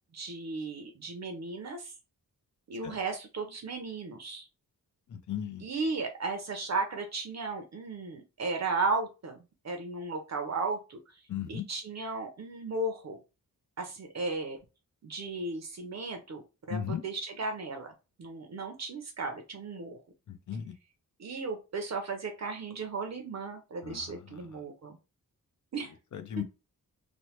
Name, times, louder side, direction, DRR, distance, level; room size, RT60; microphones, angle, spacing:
voice 1, 0.1-1.9 2.7-4.5 5.6-11.2 11.5-13.2 13.8-14.6 15.0-17.9 18.2-20.0 21.2-25.0 25.7-25.9, right 3 dB, 50° right, 0.6 m, -35 dB
voice 2, 5.1-5.6 11.3-11.6 16.7-17.0 20.3-20.7 23.8-24.0 26.1-26.4, left 9 dB, 60° left, 0.5 m, -36 dB
3.1 x 2.1 x 2.8 m
wide cardioid pair, 180°, 35 cm